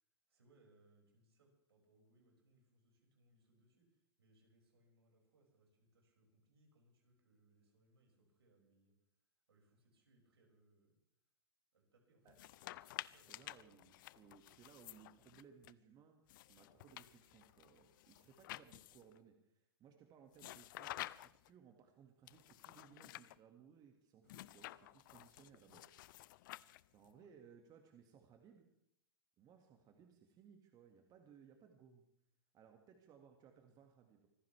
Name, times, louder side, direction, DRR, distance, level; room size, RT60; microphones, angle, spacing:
voice 1, 0.3-8.9 9.5-11.0 11.7-12.4 12.9-13.5 27.1-27.3, right 1 dB, 75° right, 0 dB, 6.3 m, -73 dB
sound 1, 12.3-15.7 16.3-19.2 20.3-21.5 22.3-23.4 24.3-27.1, left 16 dB, 50° left, 0.5 m, -52 dB
voice 2, 13.3-26.2 26.9-28.7 29.4-32.1 32.5-34.3, right 7 dB, 30° right, 4 dB, 2.1 m, -63 dB
25.5 x 15.5 x 3.5 m, 0.75 s
hypercardioid pair, 110°, 13 cm